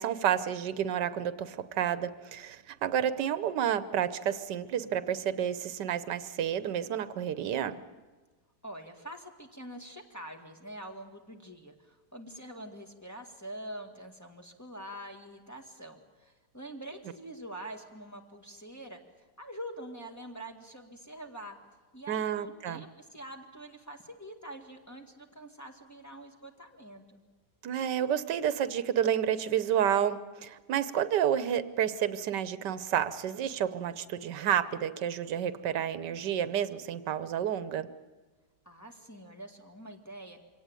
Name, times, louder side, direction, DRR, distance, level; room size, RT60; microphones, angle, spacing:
voice 1, 0.0-7.8 22.1-22.8 27.6-37.9, right 9 dB, 90° right, 14 dB, 1.5 m, -30 dB
voice 2, 8.6-19.0 19.4-21.6 21.9-27.2 38.7-40.4, right 1 dB, 10° left, 1 dB, 1.9 m, -45 dB
24.0 x 17.5 x 9.0 m, 1.3 s
omnidirectional pair, 1.8 m